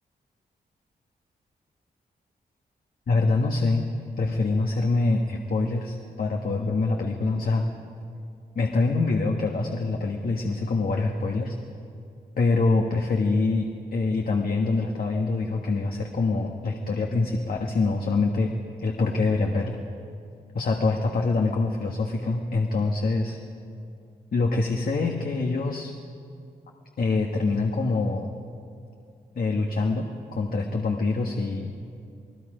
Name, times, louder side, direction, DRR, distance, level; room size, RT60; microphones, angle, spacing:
voice 1, 3.1-3.9 4.2-7.6 8.5-11.5 12.4-19.8 20.5-23.4 24.3-25.9 27.0-28.3 29.3-31.7, left 3 dB, 60° left, 1 dB, 1.6 m, -25 dB
29.0 x 19.5 x 5.1 m, 2.4 s
wide cardioid pair, 95°, 17 cm